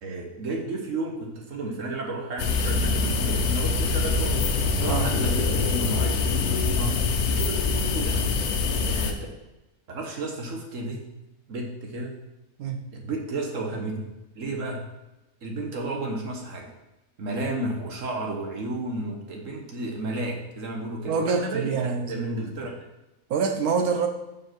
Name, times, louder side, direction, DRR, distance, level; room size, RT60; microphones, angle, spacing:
voice 1, 0.0-4.4 4.8-6.2 7.3-8.2 8.8-9.2 9.9-11.0 11.5-12.2 12.9-14.8 15.4-16.7 17.2-21.7 22.1-22.7, right 2 dB, 60° right, 1 dB, 1.6 m, -32 dB
sound 1, 2.4-9.1, left 4 dB, 85° left, 1.3 m, -24 dB
voice 2, 21.0-22.5 23.3-24.1, right 5 dB, 80° right, 5 dB, 1.4 m, -26 dB
5.9 x 4.9 x 5.9 m, 0.99 s
omnidirectional pair, 1.6 m